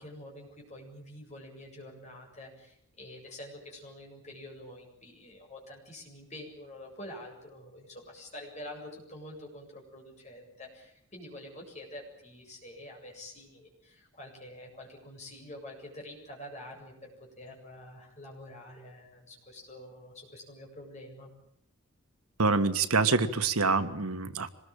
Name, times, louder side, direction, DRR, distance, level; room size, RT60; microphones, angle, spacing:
voice 1, 0.0-21.3, left 1 dB, 30° left, 0 dB, 7.8 m, -47 dB
voice 2, 22.4-24.5, right 4 dB, 85° right, 10 dB, 1.7 m, -26 dB
25.5 x 21.0 x 8.9 m, 0.70 s
head